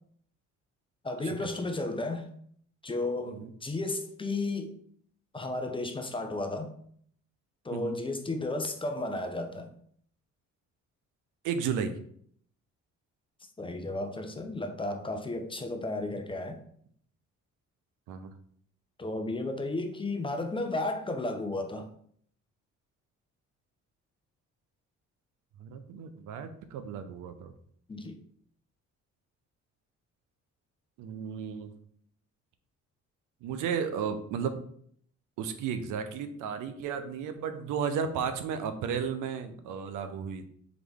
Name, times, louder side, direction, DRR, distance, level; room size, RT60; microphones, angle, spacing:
voice 1, 1.0-2.3 2.8-4.7 5.3-6.7 7.6-9.7 13.6-16.6 19.0-21.9 27.9-28.2, left 2 dB, 15° left, 6 dB, 0.6 m, -33 dB
voice 2, 11.4-11.9 18.1-18.3 25.6-27.5 31.0-31.7 33.4-34.6 35.4-40.5, right 7 dB, 90° right, 9 dB, 0.6 m, -34 dB
4.0 x 3.0 x 3.4 m, 0.62 s
cardioid pair, 90°, 30 cm